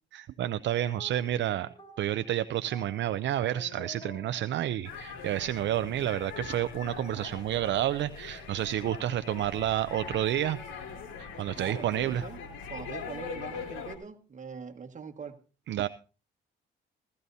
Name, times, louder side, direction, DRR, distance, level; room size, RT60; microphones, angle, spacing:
voice 1, 0.1-10.6 11.2-12.2 15.7-15.9, right 12 dB, 65° right, 12 dB, 0.5 m, -30 dB
sound 1, 0.6-5.2, equal, 25° left, 3.9 m, -51 dB
sound 2, 4.8-14.0, left 6 dB, 80° left, 2.6 m, -42 dB
voice 2, 11.6-12.4 12.7-15.3, right 6 dB, 40° right, 6 dB, 1.6 m, -42 dB
16.5 x 14.0 x 2.7 m, 0.35 s
cardioid pair, 90°, 20 cm